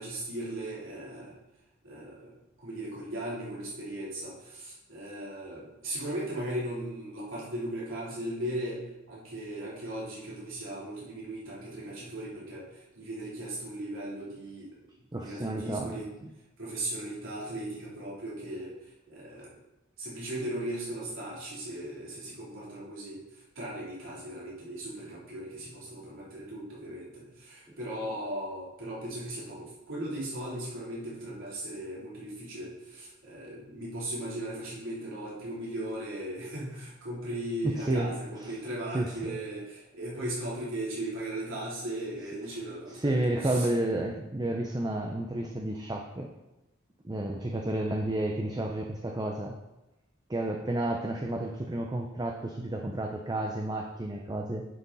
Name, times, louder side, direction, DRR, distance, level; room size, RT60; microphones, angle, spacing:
voice 1, 0.0-1.3 1.8-2.3 2.6-8.8 9.1-14.7 15.1-16.1 16.6-18.8 19.1-19.5 20.0-23.2 23.5-43.1 43.4-43.7, right 1 dB, 70° right, -6 dB, 3.3 m, -37 dB
voice 2, 15.1-16.3 37.6-38.5 38.9-39.4 43.0-46.3 47.0-49.6 50.3-54.7, right 1 dB, 20° right, 2 dB, 0.6 m, -31 dB
9.5 x 6.0 x 4.1 m, 0.98 s
head